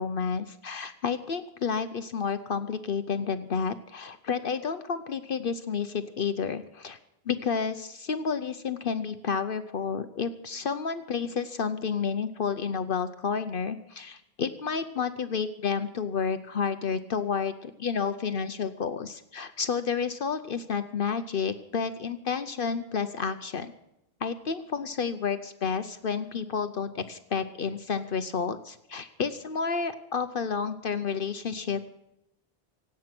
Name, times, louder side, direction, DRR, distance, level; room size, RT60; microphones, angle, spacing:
voice 1, 0.0-7.0 7.3-23.7 24.2-31.9, left 6 dB, 60° left, 11 dB, 0.9 m, -30 dB
25.5 x 8.6 x 6.0 m, 0.85 s
omnidirectional pair, 1.0 m